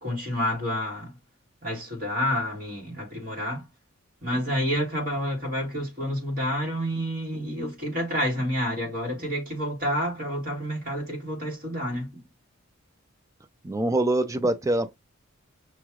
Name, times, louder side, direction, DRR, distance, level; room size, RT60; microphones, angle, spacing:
voice 1, 0.0-1.1 1.6-3.6 4.2-12.2, equal, 40° right, 2.2 m, -29 dB
voice 2, 13.6-14.9, right 1 dB, 15° right, 0.4 m, -24 dB
5.9 x 2.4 x 3.1 m
head